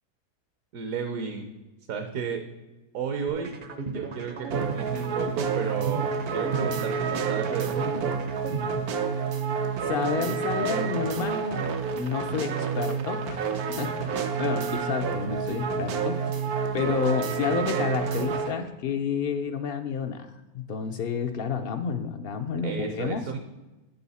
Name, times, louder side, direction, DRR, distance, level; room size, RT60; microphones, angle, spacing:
voice 1, 0.7-1.5 1.9-2.4 2.9-3.6 3.9-8.1 22.6-23.4, right 6 dB, 70° right, 6 dB, 1.1 m, -33 dB
sound 1, 3.3-9.3, right 4 dB, 50° right, 0.6 m, -36 dB
sound 2, 4.5-18.5, right 6 dB, 90° right, 1.3 m, -29 dB
voice 2, 9.8-16.2 16.7-20.3 20.5-23.2, left 6 dB, 75° left, 4 dB, 0.5 m, -30 dB
8.3 x 6.9 x 4.1 m, 1.1 s
omnidirectional pair, 1.6 m